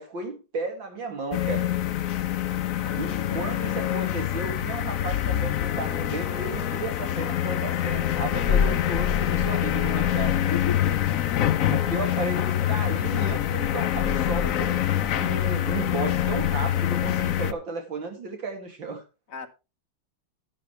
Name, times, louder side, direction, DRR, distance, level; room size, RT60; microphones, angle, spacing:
voice 1, 0.0-1.7 3.0-10.6 11.7-19.0, right 3 dB, 75° right, 3.3 m, -34 dB
sound 1, 1.3-17.5, left 11 dB, 60° left, 0.9 m, -25 dB
voice 2, 2.7-3.5 10.4-11.3 19.3-19.5, left 7 dB, 45° left, 1.5 m, -37 dB
11.0 x 10.5 x 3.3 m
omnidirectional pair, 2.1 m